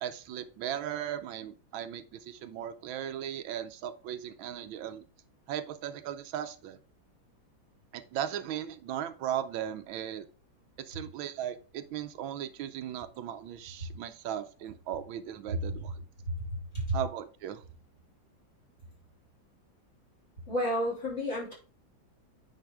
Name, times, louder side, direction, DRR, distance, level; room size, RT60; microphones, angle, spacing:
voice 1, 0.0-5.0 5.5-6.8 7.9-10.3 10.8-15.9 16.9-17.6, right 10 dB, 85° right, 10 dB, 1.4 m, -37 dB
voice 2, 20.5-21.5, equal, 35° left, -6 dB, 3.5 m, -30 dB
9.2 x 4.8 x 3.5 m, 0.38 s
omnidirectional pair, 2.1 m